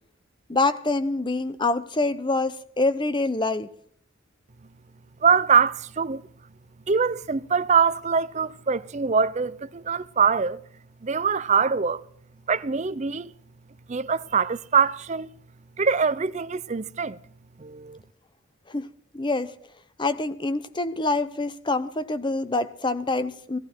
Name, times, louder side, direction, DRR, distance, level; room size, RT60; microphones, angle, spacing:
voice 1, 0.5-3.7 18.7-19.5 20.0-23.6, left 2 dB, 25° left, 0.7 m, -26 dB
voice 2, 5.2-6.2 6.9-10.6 11.0-12.0 12.5-13.3 13.9-15.3 15.8-17.2 17.6-18.0, right 6 dB, 35° right, 0.5 m, -23 dB
18.0 x 14.5 x 4.5 m
head